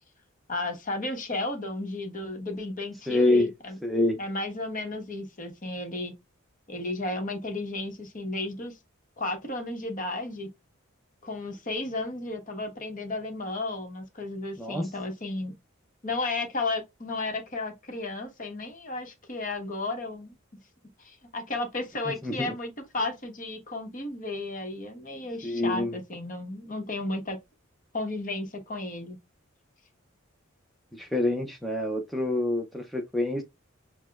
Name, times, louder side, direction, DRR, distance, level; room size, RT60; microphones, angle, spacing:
voice 1, 0.5-3.8 4.2-6.1 6.7-8.8 9.2-10.5 11.2-15.5 16.0-20.3 21.0-27.4 27.9-29.2, left 2 dB, 40° left, 1.0 m, -33 dB
voice 2, 3.1-3.5 3.8-4.2 14.6-14.9 22.1-22.5 25.4-25.9 30.9-33.4, left 2 dB, ahead, 0.5 m, -26 dB
6.3 x 2.1 x 2.3 m
head